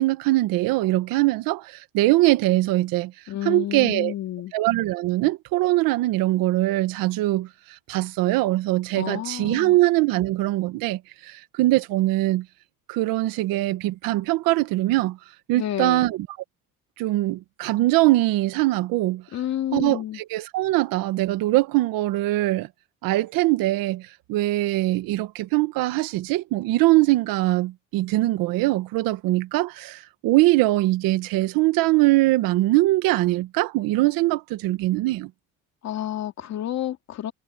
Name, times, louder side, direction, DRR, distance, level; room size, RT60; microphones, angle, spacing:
voice 1, 0.0-3.1 3.4-4.1 4.5-12.4 12.9-15.2 15.5-16.3 17.0-19.2 19.7-22.7 23.0-35.3, right 18 dB, 85° right, 1.4 m, -22 dB
voice 2, 3.3-4.5 8.9-9.8 15.5-16.1 19.3-20.2 35.8-37.3, left 12 dB, 50° left, 2.9 m, -30 dB
cardioid pair, 135°, 34 cm